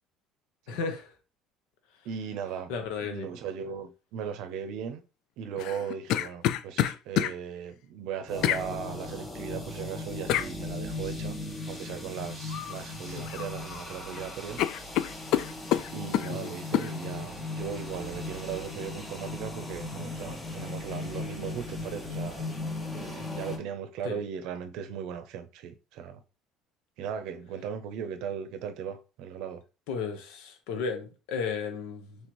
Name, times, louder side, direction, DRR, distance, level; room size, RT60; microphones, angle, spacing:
voice 1, 0.7-1.1 2.7-3.3 16.3-16.5 24.0-24.2 29.9-32.2, left 5 dB, 80° left, 1.1 m, -34 dB
voice 2, 2.0-2.7 3.0-5.0 5.4-11.4 11.7-14.6 15.9-26.2 27.0-29.6, right 7 dB, 60° right, 0.6 m, -38 dB
sound 1, 5.6-7.3 8.4-8.6 10.3-10.5 12.5-12.8 13.1-13.8 14.1-14.2 14.6-16.3 16.7-16.9, left 12 dB, 55° left, 0.3 m, -27 dB
sound 2, 8.3-23.6, left 2 dB, 10° left, 0.8 m, -37 dB
4.4 x 3.3 x 3.0 m
cardioid pair, 170°, 0 cm